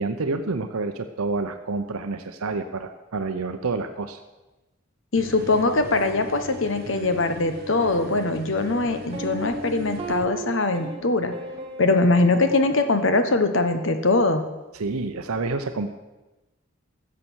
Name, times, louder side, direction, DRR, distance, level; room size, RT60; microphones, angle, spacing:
voice 1, 0.0-4.2 14.7-15.9, right 3 dB, 90° right, 7 dB, 0.7 m, -28 dB
voice 2, 5.1-11.3 11.8-14.4, left 3 dB, 60° left, 8 dB, 1.1 m, -22 dB
sound 1, 5.1-10.2, left 1 dB, 45° right, 1.0 m, -39 dB
sound 2, 7.0-7.1 7.8-14.1, right 2 dB, 25° right, 1.8 m, -37 dB
14.0 x 7.6 x 6.3 m, 1.1 s
head